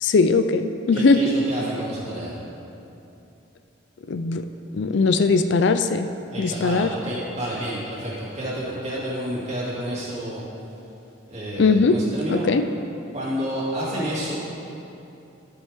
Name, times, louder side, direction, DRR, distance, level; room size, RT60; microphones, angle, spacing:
voice 1, 0.0-1.4 4.1-4.5 4.7-6.1 6.4-6.9 11.6-12.0 12.3-12.6, left 4 dB, 60° left, 9 dB, 0.4 m, -19 dB
voice 2, 0.9-2.4 6.3-10.4 11.3-12.5 13.1-14.4, right 1 dB, 35° right, -7 dB, 2.4 m, -29 dB
12.5 x 8.7 x 3.6 m, 2.8 s
head